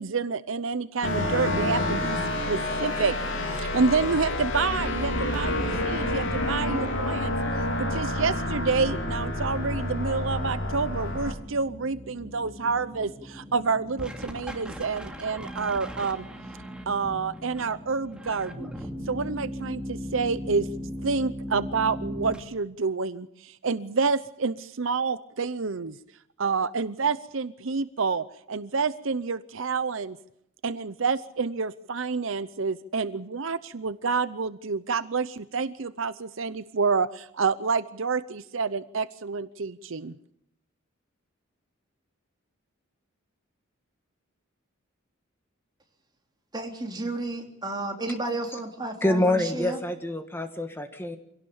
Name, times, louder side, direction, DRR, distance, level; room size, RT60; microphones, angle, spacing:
voice 1, 0.0-7.3 7.8-16.3 16.9-18.7 19.1-20.7 21.0-26.0 26.4-30.2 30.6-40.1, right 4 dB, 65° right, 0.7 m, -28 dB
sound 1, 1.0-11.3, left 1 dB, 60° left, 3.6 m, -28 dB
sound 2, 11.2-22.4, equal, 5° right, 2.7 m, -38 dB
voice 2, 46.5-49.8, right 2 dB, 20° right, 3.4 m, -32 dB
voice 3, 49.0-51.2, left 1 dB, 10° left, 1.6 m, -26 dB
25.5 x 17.5 x 7.2 m
head